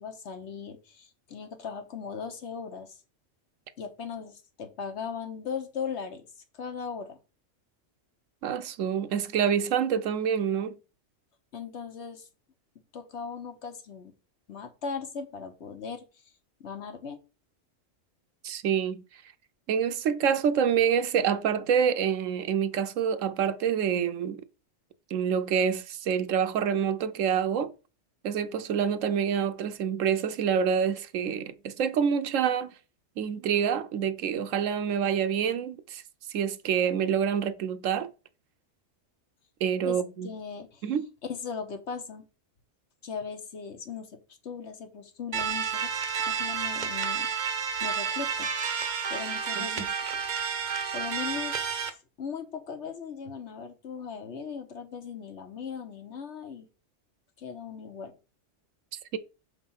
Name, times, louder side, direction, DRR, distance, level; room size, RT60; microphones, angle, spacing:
voice 1, 0.0-3.0 3.8-6.2 6.5-7.2 11.5-12.3 12.9-14.1 14.5-16.0 16.6-17.2 39.8-40.8 41.3-42.2 43.0-45.9 46.3-47.3 47.8-49.9 50.9-56.7 57.4-58.2, left 6 dB, 60° left, 1.2 m, -38 dB
voice 2, 8.4-10.8 18.4-19.0 19.7-24.4 25.1-27.7 28.2-32.7 33.2-36.0 36.3-38.1 39.6-40.3 40.8-41.0 49.6-49.9 59.1-59.2, right 7 dB, 75° right, 1.0 m, -27 dB
sound 1, 45.3-51.9, right 6 dB, 40° right, 0.7 m, -30 dB
6.5 x 3.6 x 5.5 m
omnidirectional pair, 1.4 m